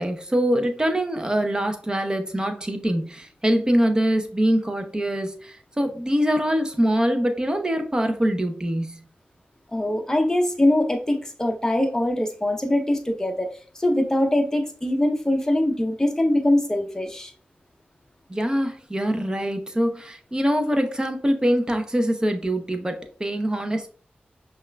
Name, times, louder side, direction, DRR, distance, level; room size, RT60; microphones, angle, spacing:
voice 1, 0.0-9.0 18.3-23.9, equal, 20° right, 6 dB, 0.7 m, -24 dB
voice 2, 9.7-17.3, left 1 dB, 15° left, 4 dB, 0.7 m, -23 dB
5.5 x 2.4 x 2.2 m, 0.43 s
cardioid pair, 55°, 4 cm